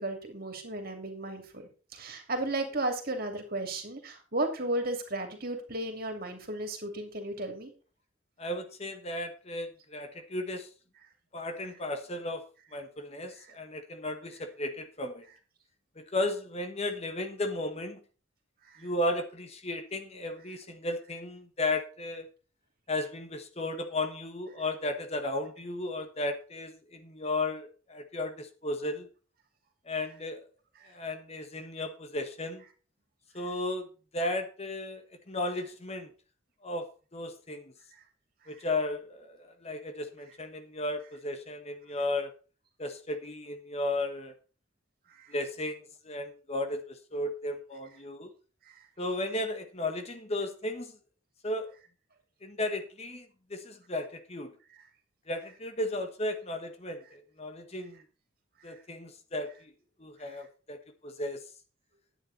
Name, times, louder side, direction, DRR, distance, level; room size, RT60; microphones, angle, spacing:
voice 1, 0.0-1.6 1.9-7.7 18.6-18.9 30.8-30.9 37.9-38.0 38.4-38.6 45.1-45.3 48.6-48.8 58.6-58.8 60.3-60.4, right 1 dB, 45° right, 5 dB, 2.8 m, -35 dB
voice 2, 8.4-10.7 11.3-12.4 12.7-15.2 16.0-18.0 18.8-22.3 22.9-29.1 29.8-30.5 30.8-32.6 33.3-36.1 36.6-37.7 38.5-42.3 42.8-44.3 45.3-48.3 49.0-51.0 51.4-51.7 52.4-54.5 55.3-58.0 58.6-59.7 60.0-61.4, left 2 dB, 30° left, 8 dB, 1.1 m, -35 dB
11.0 x 9.3 x 4.1 m, 0.36 s
head